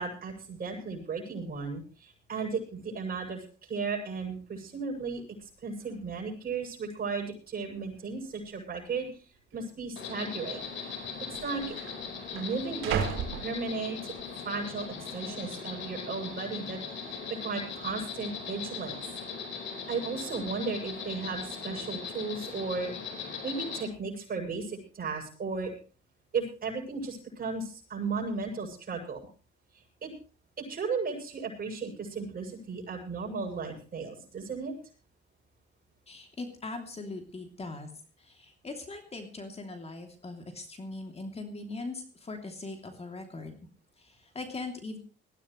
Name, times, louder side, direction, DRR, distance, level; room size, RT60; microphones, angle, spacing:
voice 1, 0.0-5.2 5.6-9.1 9.5-11.0 11.3-11.7 12.3-13.0 13.3-14.1 14.4-16.8 17.1-19.0 19.9-22.9 23.4-25.7 26.3-29.3 30.0-30.1 30.6-34.8, right 4 dB, 50° right, 0 dB, 7.6 m, -35 dB
sound 1, 5.4-5.5 5.8-6.2 6.9-7.0 7.7-8.3 8.5-8.7 9.5-9.7 10.7-10.8 11.0-14.2 14.7-15.1, right 7 dB, 90° right, 3.2 m, -37 dB
Insect, 10.0-23.8, left 5 dB, 70° left, 4.6 m, -39 dB
voice 2, 36.1-37.9 38.2-43.6 44.0-45.0, left 3 dB, 30° left, 5 dB, 3.0 m, -40 dB
20.5 x 15.5 x 3.2 m, 0.37 s
cardioid pair, 90°, 20 cm